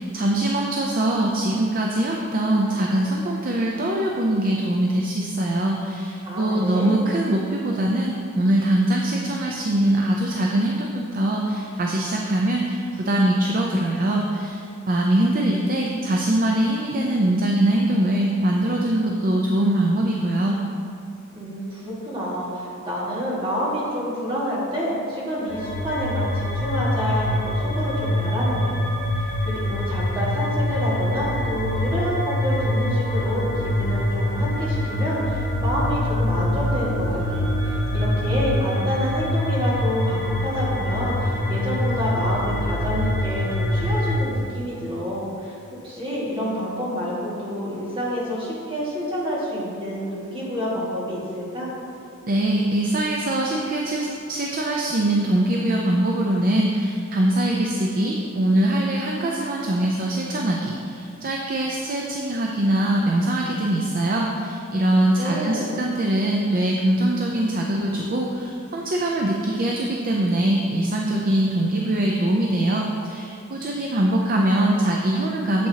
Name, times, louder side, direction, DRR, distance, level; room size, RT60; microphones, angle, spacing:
voice 1, 0.0-20.6 52.3-75.7, right 1 dB, 40° right, -1 dB, 0.5 m, -22 dB
voice 2, 6.2-7.0 21.3-45.6 45.8-51.7 64.9-65.7, equal, 25° right, -7 dB, 1.9 m, -28 dB
sound 1, 25.5-44.2, left 1 dB, 25° left, 1.5 m, -24 dB
8.4 x 7.6 x 2.8 m, 2.5 s
head